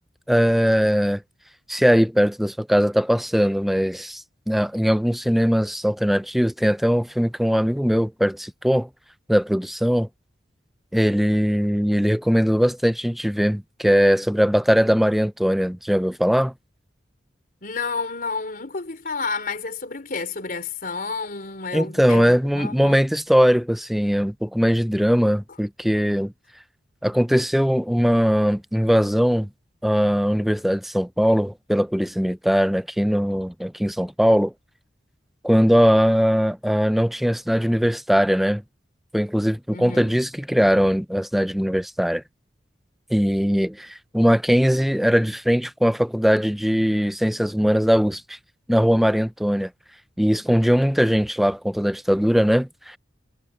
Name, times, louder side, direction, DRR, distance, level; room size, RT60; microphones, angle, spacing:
voice 1, 0.3-1.2 1.7-8.9 9.3-10.1 10.9-16.5 21.7-26.3 27.0-29.5 29.8-34.5 35.4-38.6 39.1-42.2 43.1-48.4 48.7-49.7 50.2-53.0, equal, ahead, 0.4 m, -20 dB
voice 2, 17.6-23.1 39.7-40.2, left 4 dB, 50° left, 3.9 m, -30 dB
head